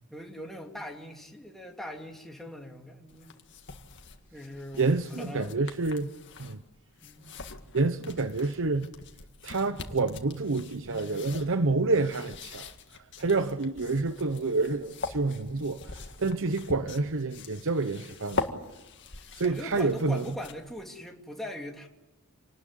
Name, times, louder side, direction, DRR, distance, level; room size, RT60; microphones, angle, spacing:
voice 1, 0.1-3.4 4.3-4.9 5.2-5.5 7.0-7.4 19.1-21.9, left 1 dB, ahead, 2.7 m, -41 dB
sound 1, 3.1-20.8, left 3 dB, 55° left, 2.0 m, -42 dB
voice 2, 4.8-6.1 6.4-6.6 7.7-8.9 9.4-12.7 13.2-18.4 19.3-20.3, right 3 dB, 60° right, 0.9 m, -28 dB
27.5 x 19.5 x 9.6 m
head